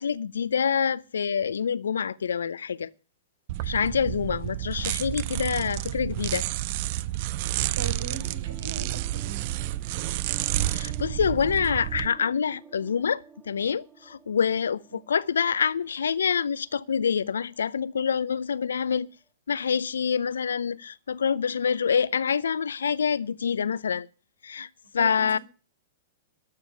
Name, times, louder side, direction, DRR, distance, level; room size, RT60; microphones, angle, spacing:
voice 1, 0.0-2.9 3.6-6.5 10.7-19.1 19.5-24.1 24.4-24.7 24.9-25.4, left 7 dB, 75° left, 0.6 m, -26 dB
sound 1, 3.5-12.1, right 15 dB, 50° right, 0.5 m, -30 dB
voice 2, 7.7-9.4 14.9-15.0 25.0-25.4, right 5 dB, 75° right, 4.1 m, -40 dB
sound 2, 8.1-18.0 18.2-18.5 18.8-18.9 19.2-19.3, right 6 dB, 15° right, 2.3 m, -49 dB
13.0 x 6.9 x 7.0 m
figure-of-eight pair, 105°, 0 cm